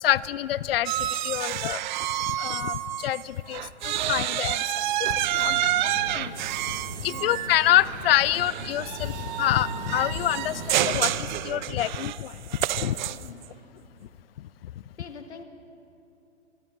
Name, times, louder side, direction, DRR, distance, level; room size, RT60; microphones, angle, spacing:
voice 1, 0.0-1.8 2.4-4.8 5.3-5.6 6.1-6.3 7.0-12.3 12.8-13.0, left 13 dB, 60° left, 20 dB, 0.5 m, -26 dB
sound 1, 0.9-3.2 3.5-13.5, right 13 dB, 45° right, 0.5 m, -29 dB
sound 2, 5.2-11.2, right 2 dB, 90° right, 2.8 m, -39 dB
voice 2, 5.4-5.7 7.1-7.5 13.1-13.5 15.0-15.4, left 5 dB, 75° left, 7 dB, 1.7 m, -45 dB
25.5 x 15.0 x 3.7 m, 2.7 s
figure-of-eight pair, 115°, 34 cm